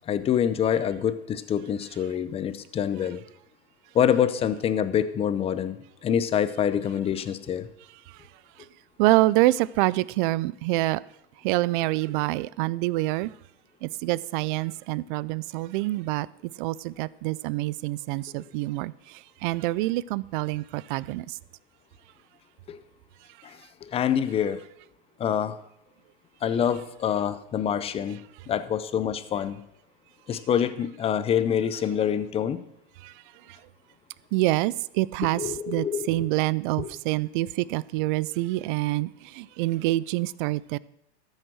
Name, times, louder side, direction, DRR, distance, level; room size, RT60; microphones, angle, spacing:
voice 1, 0.1-3.2 3.9-5.8 6.0-7.7 22.7-22.8 23.4-24.6 25.2-25.6 26.4-28.2 28.5-29.6 30.3-32.6 35.3-36.3 36.8-36.9, left 9 dB, 20° left, 0.5 m, -26 dB
voice 2, 9.0-11.0 11.4-13.3 13.8-16.3 16.6-18.9 19.4-21.3 33.0-33.1 34.3-40.8, right 19 dB, 50° right, 0.4 m, -26 dB
13.5 x 6.4 x 6.3 m
supercardioid pair, 135°, 33 cm